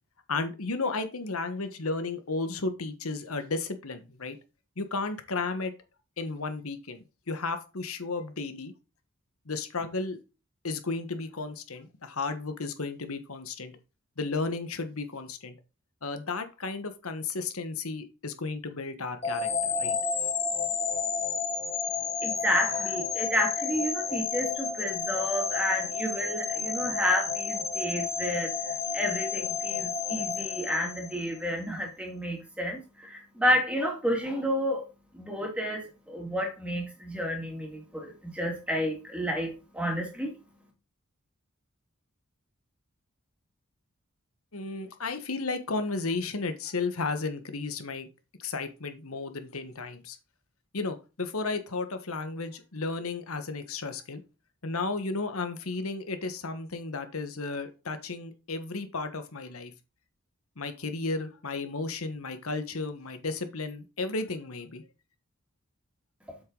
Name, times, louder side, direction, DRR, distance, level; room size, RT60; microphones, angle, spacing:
voice 1, 0.3-4.4 4.8-5.7 6.2-8.7 9.5-10.2 10.6-13.7 14.2-15.5 16.0-20.0 44.5-48.1 48.4-50.2 50.7-54.2 54.6-59.7 60.6-64.8, left 3 dB, 80° left, 9 dB, 1.3 m, -33 dB
sound 1, 19.2-31.4, left 5 dB, 30° left, 1.4 m, -31 dB
voice 2, 22.2-28.5 28.9-34.8 35.1-40.3, equal, 5° right, 0 dB, 2.5 m, -30 dB
7.9 x 6.6 x 3.9 m, 0.30 s
head